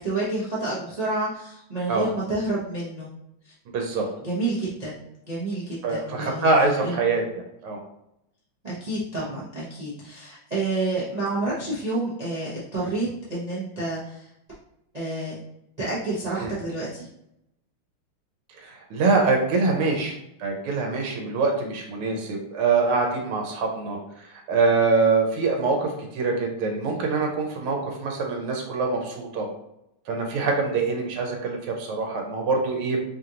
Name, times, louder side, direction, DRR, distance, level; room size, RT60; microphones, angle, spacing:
voice 1, 0.0-3.1 3.4-3.5 3.9-5.0 5.3-6.5 6.8-7.0 8.6-14.3 14.9-15.4 15.8-17.1, right 2 dB, 50° right, -8 dB, 0.4 m, -29 dB
voice 2, 3.7-4.1 5.8-7.8 16.4-16.5 18.6-29.5 30.1-33.0, right 3 dB, 85° right, 1 dB, 1.7 m, -24 dB
4.9 x 2.5 x 2.9 m, 0.81 s
omnidirectional pair, 2.4 m